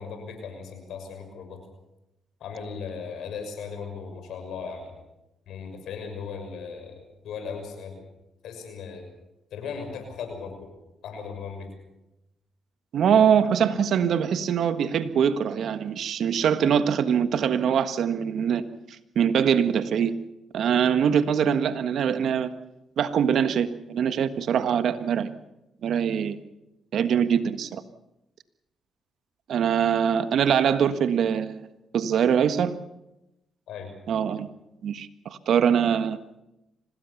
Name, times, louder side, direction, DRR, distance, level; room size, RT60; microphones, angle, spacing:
voice 1, 0.0-1.6 2.4-5.0 5.5-8.1 8.4-9.1 9.5-10.7 11.0-11.7 33.7-33.9, left 5 dB, 75° left, 6 dB, 6.3 m, -37 dB
voice 2, 12.9-18.6 18.9-20.1 20.5-22.5 23.0-25.3 25.8-26.4 26.9-27.8 29.5-31.6 31.9-32.8 34.1-34.5 34.8-36.2, right 8 dB, 70° right, 11 dB, 1.4 m, -23 dB
26.0 x 18.5 x 7.1 m, 0.92 s
supercardioid pair, 60°, 0 cm